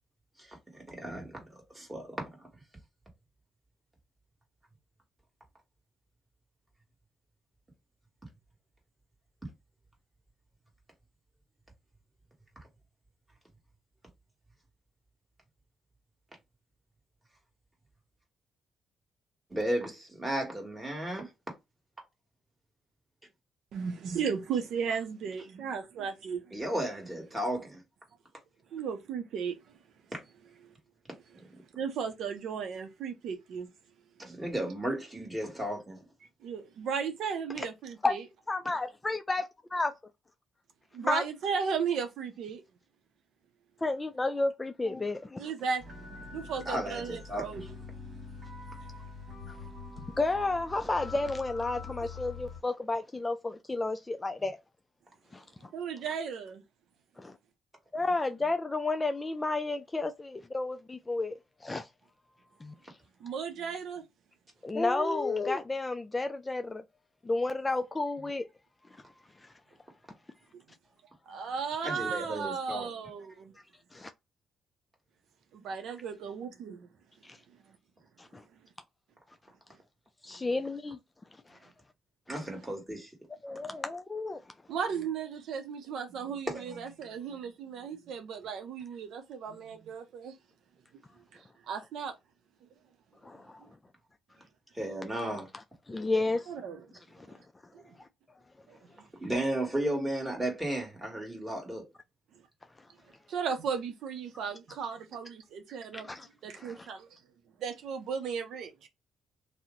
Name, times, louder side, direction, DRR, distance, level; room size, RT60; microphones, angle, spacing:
voice 1, 0.7-1.4 1.7-2.2 19.5-21.3 26.5-27.8 31.3-31.4 34.2-36.0 46.7-47.7 71.8-72.9 82.3-83.1 86.5-86.8 94.8-95.5 99.2-101.8, right 1 dB, 15° right, 1.4 m, -34 dB
voice 2, 23.7-26.4 28.7-29.6 31.7-33.7 36.4-38.2 40.9-42.6 45.4-45.8 46.1-47.8 55.7-56.6 63.2-64.0 71.3-73.5 75.5-76.9 84.7-90.3 91.7-92.1 96.5-96.8 97.7-97.8 98.7-98.8 103.3-106.1 106.4-107.1 107.6-108.9, right 6 dB, 75° right, 0.5 m, -35 dB
voice 3, 38.5-39.9 41.0-41.2 43.8-45.4 50.2-54.6 55.3-55.7 57.2-57.4 57.9-61.3 61.6-61.9 62.6-62.8 64.6-66.8 67.2-68.5 69.4-69.5 71.4-71.5 73.9-74.1 77.2-77.4 78.2-78.4 80.2-81.0 81.5-81.6 83.4-84.4 93.2-93.6 95.9-96.5 97.2-97.4 98.0-98.1 105.9-106.3 106.5-106.9, left 3 dB, 20° left, 0.3 m, -32 dB
sound 1, 45.8-52.6, left 4 dB, 50° right, 1.4 m, -44 dB
2.7 x 2.0 x 3.7 m
cardioid pair, 90°, 0 cm